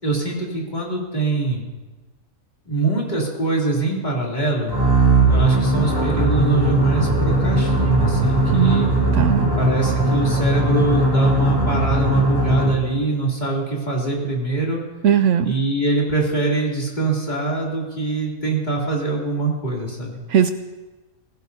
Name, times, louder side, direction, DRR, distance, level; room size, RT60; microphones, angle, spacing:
voice 1, 0.0-1.6 2.7-4.8 5.2-8.9 9.6-14.8 15.4-20.2, right 3 dB, 30° left, -4 dB, 3.2 m, -23 dB
sound 1, 4.7-12.9, right 1 dB, 15° right, 3.3 m, -19 dB
voice 2, 8.5-9.5 15.0-15.5 20.3-20.5, right 8 dB, 70° right, 10 dB, 0.8 m, -18 dB
19.0 x 16.0 x 2.8 m, 1.2 s
omnidirectional pair, 1.5 m